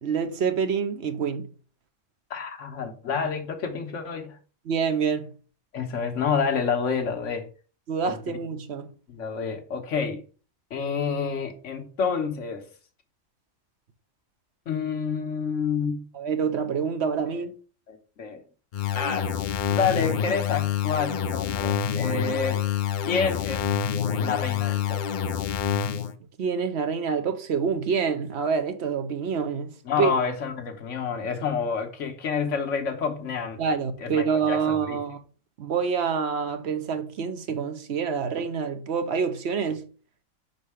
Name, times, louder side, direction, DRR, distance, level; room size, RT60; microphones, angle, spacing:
voice 1, 0.0-1.5 4.7-5.3 7.9-8.9 16.1-17.5 26.4-30.1 33.6-35.2 35.6-39.8, right 6 dB, 65° right, 0.9 m, -27 dB
voice 2, 2.3-4.4 5.7-7.5 8.0-8.4 9.1-10.2 10.7-12.6 14.7-16.0 17.9-18.4 18.9-19.4 19.7-22.7 23.0-23.7 24.2-25.0 29.8-33.6 34.0-35.0, left 6 dB, 75° left, 1.4 m, -28 dB
sound 1, 18.7-26.1, left 8 dB, 55° left, 0.6 m, -27 dB
5.5 x 4.0 x 4.8 m
omnidirectional pair, 1.3 m